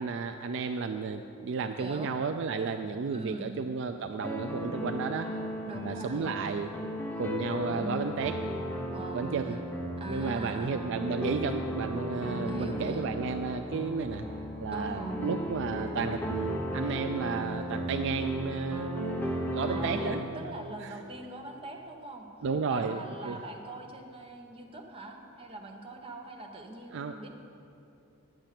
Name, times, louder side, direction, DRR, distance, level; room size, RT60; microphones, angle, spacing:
voice 1, 0.0-5.3 5.8-6.7 7.2-8.4 9.1-9.6 10.1-14.3 14.6-20.2 20.8-21.0 22.4-23.4 26.9-27.2, right 5 dB, 55° right, 7 dB, 0.3 m, -33 dB
voice 2, 1.8-2.2 3.1-3.5 5.7-6.3 8.9-9.6 10.0-10.8 12.4-13.1 14.7-15.2 19.6-22.3 22.7-27.3, right 2 dB, 25° right, 1 dB, 1.0 m, -42 dB
sound 1, 4.2-20.2, equal, 10° left, 0.9 m, -35 dB
10.5 x 7.9 x 5.9 m, 2.7 s
head